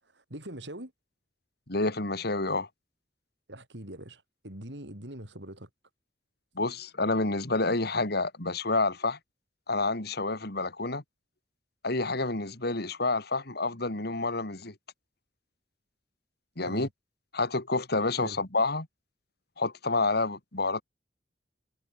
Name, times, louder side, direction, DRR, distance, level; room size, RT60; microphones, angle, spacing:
voice 1, 0.1-0.9 3.5-5.7 16.6-16.9 18.2-18.4, right 1 dB, 70° right, 6.1 m, -42 dB
voice 2, 1.7-2.7 6.5-9.2 9.7-11.0 11.8-14.7 16.6-16.9 17.3-18.9 19.6-20.8, left 3 dB, 60° left, 3.4 m, -29 dB
head